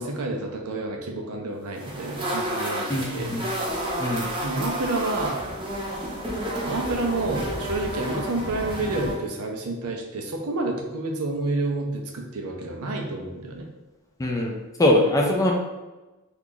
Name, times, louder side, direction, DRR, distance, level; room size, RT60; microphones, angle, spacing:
voice 1, 0.0-3.3 4.4-5.4 6.6-13.7, right 2 dB, 80° right, 1 dB, 0.6 m, -29 dB
sound 1, 1.8-9.2, right 1 dB, 25° right, 0.7 m, -31 dB
voice 2, 2.9-3.4 4.0-4.3 14.2-15.5, left 1 dB, 15° left, 0 dB, 0.4 m, -22 dB
2.9 x 2.4 x 3.7 m, 1.1 s
head